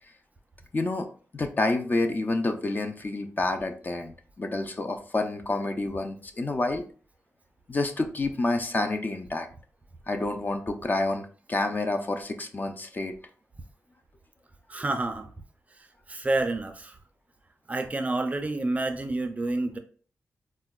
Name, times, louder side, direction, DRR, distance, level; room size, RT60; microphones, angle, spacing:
voice 1, 0.7-1.1 1.3-6.8 7.7-9.5 10.1-13.1, left 2 dB, 35° left, 5 dB, 0.4 m, -28 dB
voice 2, 14.7-15.3 15.8-17.0 17.7-19.8, right 2 dB, 25° right, 6 dB, 0.4 m, -29 dB
4.3 x 2.1 x 2.2 m, 0.42 s
wide cardioid pair, 90°, 5 cm